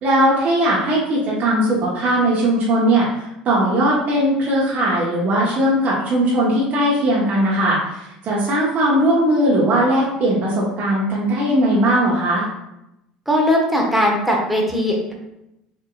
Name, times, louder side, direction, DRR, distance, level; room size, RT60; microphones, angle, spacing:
voice 1, 0.0-12.5, right 1 dB, 40° right, -5 dB, 1.1 m, -19 dB
voice 2, 13.3-15.1, equal, ahead, -2 dB, 1.1 m, -19 dB
6.4 x 2.9 x 2.4 m, 0.86 s
figure-of-eight pair, 65°, 4 cm